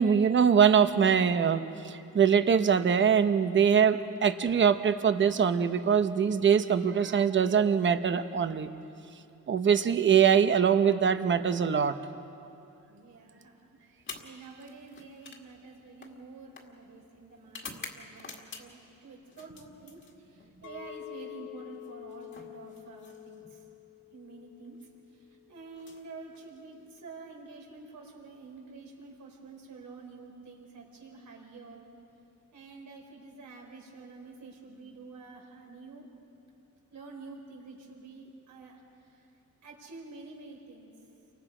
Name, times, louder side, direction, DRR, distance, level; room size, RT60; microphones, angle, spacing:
voice 1, 0.0-8.7 9.5-12.0, right 7 dB, 40° right, 10 dB, 0.9 m, -23 dB
voice 2, 12.9-23.7 24.1-24.8 25.1-31.9 32.5-36.1 36.9-39.3 39.6-40.9, right 3 dB, 75° right, -1 dB, 4.8 m, -48 dB
sound 1, 14.0-18.9 19.3-20.5 21.7-23.6 24.6-24.9 25.7-26.9, left 4 dB, 40° left, 2.0 m, -48 dB
Chink clink, 20.6-25.8, left 15 dB, 80° left, 1.9 m, -48 dB
30.0 x 24.5 x 5.0 m, 2.7 s
wide cardioid pair, 165°, 31 cm